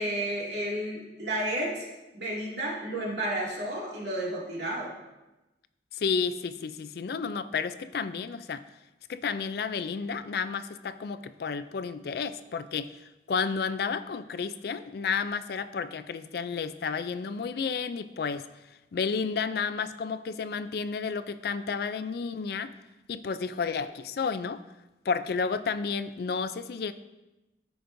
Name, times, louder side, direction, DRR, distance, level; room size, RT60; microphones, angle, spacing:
voice 1, 0.0-1.9 2.1-4.9, right 1 dB, 75° right, -4 dB, 2.3 m, -32 dB
voice 2, 5.9-8.6 9.1-13.0 13.3-18.5 18.9-22.7 23.1-24.6 25.1-26.9, left 5 dB, 60° left, 13 dB, 0.4 m, -31 dB
13.0 x 5.2 x 2.6 m, 1.0 s
head